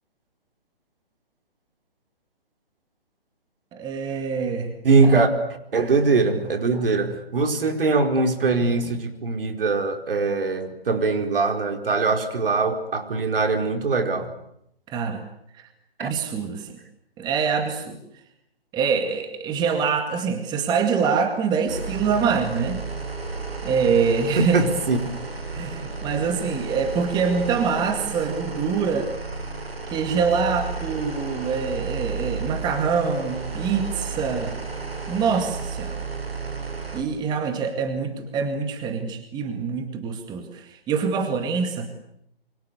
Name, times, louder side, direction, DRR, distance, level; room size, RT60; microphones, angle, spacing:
voice 1, 3.7-4.7 14.9-15.2 16.0-16.8 17.2-18.0 18.7-22.8 23.6-24.6 25.5-29.1 29.9-34.6 35.1-36.0 36.9-41.9, right 5 dB, 15° right, 7 dB, 2.1 m, -25 dB
voice 2, 4.8-5.3 5.7-14.3 16.0-16.1 24.4-25.0, right 3 dB, 65° right, 6 dB, 4.7 m, -22 dB
sound 1, 21.7-37.0, right 4 dB, 85° right, 7.0 m, -32 dB
27.5 x 24.0 x 8.2 m, 0.74 s
hypercardioid pair, 145°, 30 cm